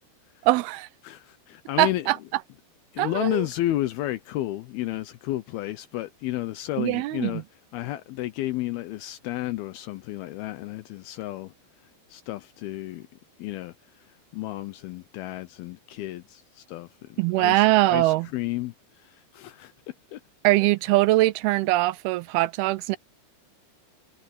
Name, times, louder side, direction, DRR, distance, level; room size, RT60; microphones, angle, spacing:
voice 1, 0.4-0.9 1.8-2.2 3.0-3.4 6.8-7.4 17.2-18.3 20.4-23.0, right 18 dB, 75° right, 2.5 m, -22 dB
voice 2, 1.0-2.1 2.9-7.4 7.7-11.5 12.1-13.1 13.4-13.7 14.3-18.7 19.0-19.7 20.1-20.2, left 15 dB, 75° left, 2.4 m, -32 dB
omnidirectional pair, 4.9 m